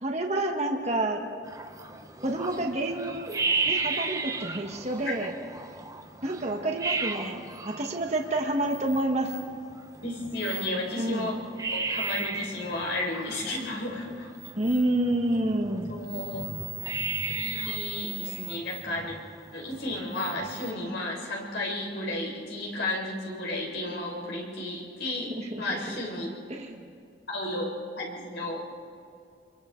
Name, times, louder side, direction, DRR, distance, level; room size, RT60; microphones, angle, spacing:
voice 1, 0.0-1.2 2.2-5.3 6.2-9.3 11.0-11.4 14.6-15.9 25.3-25.6 26.5-26.8, right 1 dB, 35° right, 2 dB, 1.4 m, -29 dB
sound 1, 1.4-20.7, right 4 dB, 15° right, 0.9 m, -35 dB
voice 2, 10.0-11.3 11.7-14.3 15.9-16.4 17.3-19.2 19.5-25.3 25.6-26.3 27.3-27.7 28.0-28.6, left 1 dB, 70° left, -2 dB, 5.0 m, -33 dB
29.5 x 22.5 x 3.9 m, 2.5 s
head